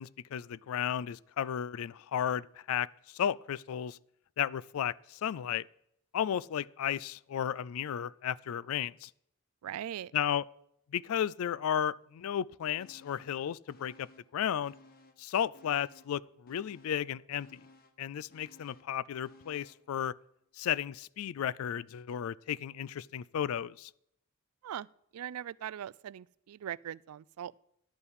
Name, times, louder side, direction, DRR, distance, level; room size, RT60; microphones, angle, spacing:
voice 1, 0.0-4.0 4.4-5.7 6.1-9.1 10.1-10.4 10.9-14.7 15.2-17.6 18.0-20.1 20.6-23.9, left 9 dB, 70° left, 0.3 m, -34 dB
voice 2, 9.6-10.1 24.6-24.9 25.1-27.6, right 10 dB, 85° right, 0.3 m, -40 dB
sound 1, 12.8-13.4 13.7-15.3 15.5-19.9 20.3-20.4, left 2 dB, 40° left, 1.0 m, -60 dB
10.5 x 5.7 x 8.0 m
head